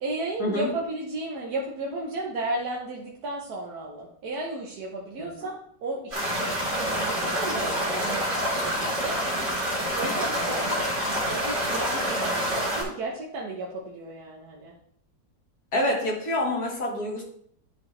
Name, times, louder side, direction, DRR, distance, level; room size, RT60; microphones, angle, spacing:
voice 1, 0.0-6.5 6.9-9.1 10.0-10.4 11.3-14.7, right 2 dB, 60° right, -2 dB, 1.4 m, -34 dB
sound 1, 6.1-12.8, equal, 25° right, 3.4 m, -27 dB
voice 2, 10.4-10.8 15.7-17.2, left 1 dB, 55° left, -1 dB, 2.2 m, -27 dB
11.5 x 4.8 x 3.2 m, 0.66 s
omnidirectional pair, 2.0 m